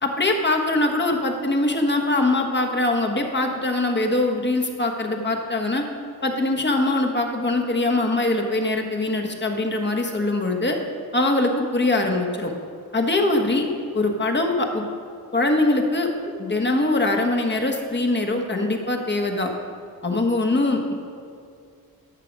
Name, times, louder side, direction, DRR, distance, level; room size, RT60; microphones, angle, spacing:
voice 1, 0.0-5.8 6.2-10.8 11.1-12.5 12.9-13.7 13.9-14.8 15.3-16.1 16.4-19.5 20.0-20.9, left 2 dB, 30° left, 2 dB, 1.3 m, -22 dB
12.0 x 6.7 x 5.3 m, 2.3 s
cardioid pair, 75°, 37 cm